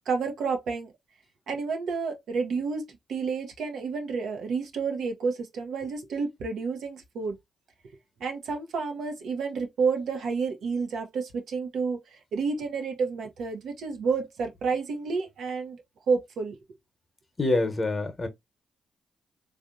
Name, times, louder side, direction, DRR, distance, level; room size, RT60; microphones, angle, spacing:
voice 1, 0.1-0.9 1.5-7.4 8.2-15.8 16.1-16.6, right 5 dB, 70° right, 0.7 m, -30 dB
voice 2, 17.4-18.3, left 2 dB, 40° left, 0.9 m, -26 dB
3.4 x 2.5 x 2.4 m
hypercardioid pair, 45°, 0 cm